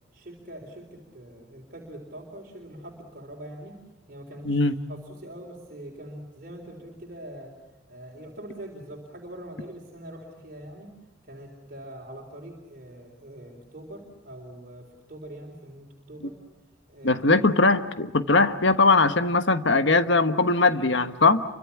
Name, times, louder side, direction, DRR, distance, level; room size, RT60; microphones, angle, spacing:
voice 1, 0.1-3.8 4.1-4.6 4.9-7.5 7.9-10.9 11.2-16.3 16.9-17.4, right 1 dB, 45° right, 0 dB, 3.8 m, -43 dB
voice 2, 17.0-21.4, left 3 dB, 65° left, 10 dB, 1.3 m, -20 dB
28.0 x 24.5 x 7.2 m, 1.0 s
head